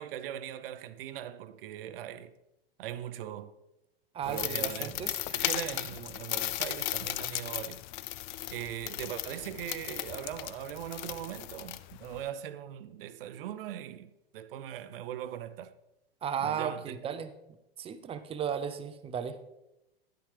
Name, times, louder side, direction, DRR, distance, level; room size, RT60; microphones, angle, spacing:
voice 1, 0.0-2.3 2.8-3.5 4.3-5.0 5.3-7.8 8.5-15.7 16.4-17.0, right 11 dB, 65° right, 0.6 m, -40 dB
voice 2, 4.1-5.5 16.2-17.3 17.8-19.4, right 8 dB, 20° right, 0.6 m, -35 dB
sound 1, 4.2-12.3, left 16 dB, 50° left, 0.4 m, -36 dB
9.9 x 9.4 x 3.3 m
hypercardioid pair, 110°, 30 cm